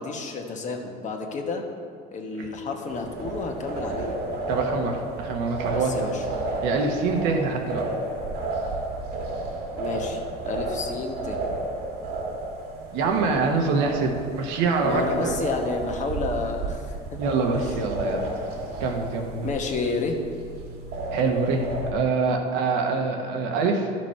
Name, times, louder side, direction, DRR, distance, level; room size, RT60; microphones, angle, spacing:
voice 1, 0.0-1.6 2.1-4.2 5.7-6.2 9.7-11.4 14.8-16.8 17.6-17.7 19.4-20.2, left 4 dB, 40° left, 2 dB, 1.3 m, -30 dB
sound 1, 2.9-21.9, right 2 dB, 60° right, 1.7 m, -32 dB
voice 2, 4.5-6.1 6.6-7.8 12.9-15.4 17.2-18.3 18.8-19.5 21.1-21.6 21.9-23.9, right 4 dB, 75° right, 2 dB, 1.3 m, -25 dB
11.5 x 6.0 x 4.4 m, 2.2 s
supercardioid pair, 100°, 19 cm